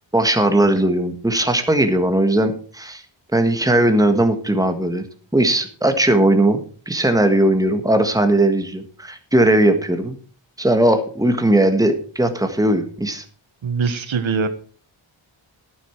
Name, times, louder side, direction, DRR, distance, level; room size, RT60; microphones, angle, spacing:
voice 1, 0.1-3.0 3.3-5.1 5.3-10.2 10.6-13.2, right 1 dB, 10° right, 7 dB, 1.6 m, -18 dB
voice 2, 13.6-14.5, right 5 dB, 75° right, 10 dB, 1.4 m, -22 dB
11.5 x 9.6 x 4.7 m, 0.41 s
wide cardioid pair, 90°, 47 cm